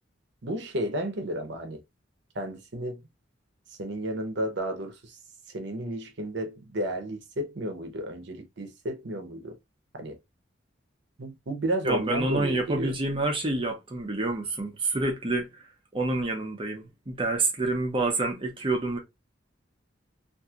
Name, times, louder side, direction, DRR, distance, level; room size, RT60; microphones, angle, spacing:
voice 1, 0.4-1.8 2.3-3.0 3.8-5.2 5.5-9.6 9.9-10.2 11.2-12.9, right 1 dB, 65° right, 0.8 m, -32 dB
voice 2, 11.8-15.6 15.9-19.0, right 2 dB, 30° right, 0.7 m, -28 dB
2.8 x 2.6 x 2.4 m
head